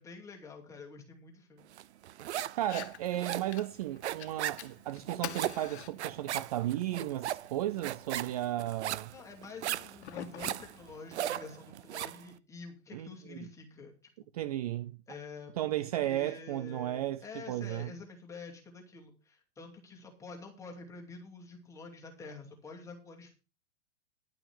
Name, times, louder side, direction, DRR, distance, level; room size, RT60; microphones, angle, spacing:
voice 1, 0.0-1.6 9.1-13.9 15.1-15.5 15.8-23.3, left 4 dB, 10° left, 2.4 m, -48 dB
sound 1, 1.8-2.7 2.9-12.2, right 12 dB, 80° right, 0.8 m, -37 dB
Fire, 2.6-11.6, left 11 dB, 75° left, 1.5 m, -49 dB
voice 2, 2.6-9.1 12.9-13.4 14.3-14.9 15.6-17.9, right 13 dB, 35° right, 0.5 m, -34 dB
11.5 x 5.8 x 7.2 m
supercardioid pair, 165°, 34 cm